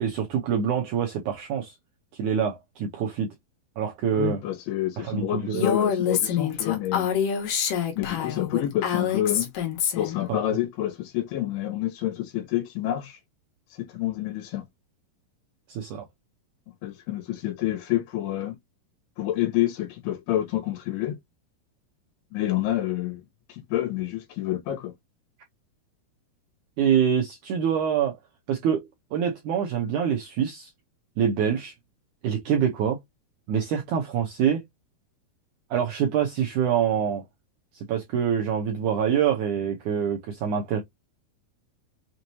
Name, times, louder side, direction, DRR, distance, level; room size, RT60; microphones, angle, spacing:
voice 1, 0.0-1.8 2.1-3.3 3.8-4.4 5.0-5.7 10.3-10.4 15.7-16.1 26.8-28.2 28.5-30.7 31.2-31.7 32.2-33.0 33.5-34.6 35.7-37.2 37.7-40.8, right 8 dB, 80° right, 1.8 m, -25 dB
voice 2, 4.1-7.1 7.9-9.5 10.0-13.2 13.7-14.6 16.8-18.5 19.2-21.2 22.3-23.2 23.5-24.9, left 13 dB, 80° left, 3.1 m, -28 dB
Female speech woman speaking, 5.5-10.2, left 8 dB, 65° left, 2.5 m, -26 dB
6.3 x 3.0 x 2.7 m
omnidirectional pair, 4.6 m